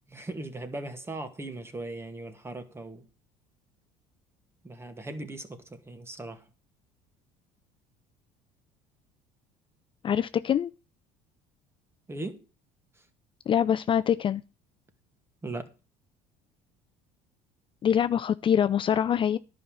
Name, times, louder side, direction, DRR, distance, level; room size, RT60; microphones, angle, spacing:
voice 1, 0.1-3.1 4.6-6.5 12.1-12.5 15.4-15.7, right 2 dB, 15° right, 2.1 m, -38 dB
voice 2, 10.0-10.7 13.5-14.4 17.8-19.4, left 9 dB, 35° left, 0.5 m, -24 dB
11.0 x 5.6 x 7.7 m
supercardioid pair, 90°, 14 cm